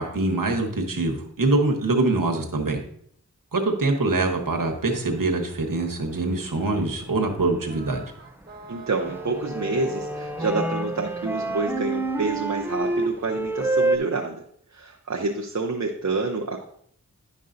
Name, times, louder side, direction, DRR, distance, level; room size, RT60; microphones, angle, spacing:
voice 1, 0.0-2.8 3.5-8.0, right 2 dB, 80° right, 2 dB, 1.1 m, -24 dB
sound 1, 4.3-14.0, right 2 dB, 5° right, 0.5 m, -29 dB
sound 2, 7.7-13.1, right 2 dB, 30° right, 1.6 m, -44 dB
voice 2, 8.7-14.4 14.7-16.6, right 3 dB, 55° right, 0 dB, 0.8 m, -28 dB
10.5 x 5.4 x 2.6 m, 0.66 s
wide cardioid pair, 50°, 33 cm